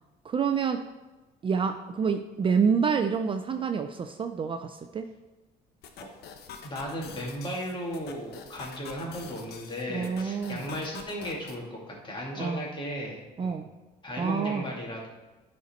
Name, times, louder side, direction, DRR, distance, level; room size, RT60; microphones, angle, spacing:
voice 1, 0.2-0.8 1.4-5.1 9.9-10.7 12.4-12.7 13.4-13.7 14.2-14.7, right 6 dB, 30° right, 7 dB, 0.4 m, -27 dB
sound 1, 5.8-11.6, left 6 dB, 70° left, 0.9 m, -46 dB
voice 2, 6.6-13.6 14.0-15.1, equal, 30° left, -2 dB, 2.4 m, -36 dB
11.0 x 4.4 x 4.3 m, 1.1 s
cardioid pair, 110°, 17 cm